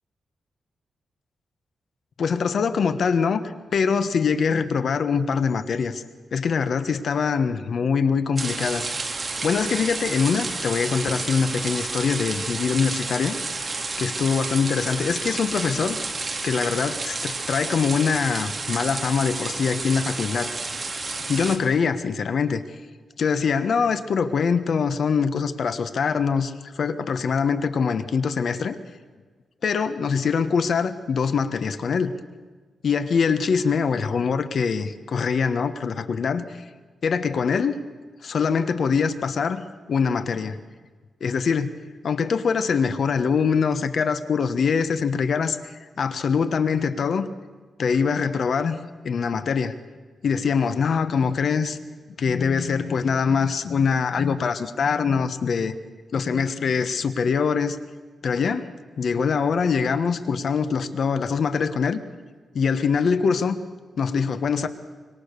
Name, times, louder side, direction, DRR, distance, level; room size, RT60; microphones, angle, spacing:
voice 1, 2.2-6.0 6.3-8.9 9.4-13.3 13.6-13.7 14.0-16.0 16.4-20.5 21.3-22.6 23.2-28.8 29.6-32.1 32.8-36.7 37.0-37.8 38.2-39.6 39.9-40.6 41.2-41.7 42.0-47.3 47.8-48.8 49.0-49.7 50.2-51.8 52.2-55.7 56.1-57.8 58.2-62.0 62.5-63.6 64.0-64.7, left 6 dB, 60° left, 11 dB, 1.2 m, -23 dB
sound 1, 8.4-21.6, right 3 dB, 30° right, 2.7 m, -30 dB
25.5 x 24.0 x 6.8 m, 1.4 s
wide cardioid pair, 130°, 0 cm